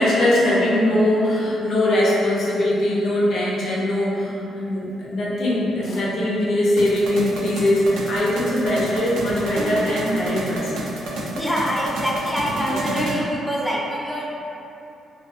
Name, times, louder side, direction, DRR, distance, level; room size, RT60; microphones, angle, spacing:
voice 1, 0.0-11.0, left 1 dB, 65° left, -6 dB, 0.6 m, -21 dB
sound 1, 6.8-13.2, right 1 dB, 85° right, 0.4 m, -30 dB
voice 2, 11.3-14.3, equal, ahead, -5 dB, 0.4 m, -25 dB
2.4 x 2.3 x 2.4 m, 2.9 s
cardioid pair, 90°, 0 cm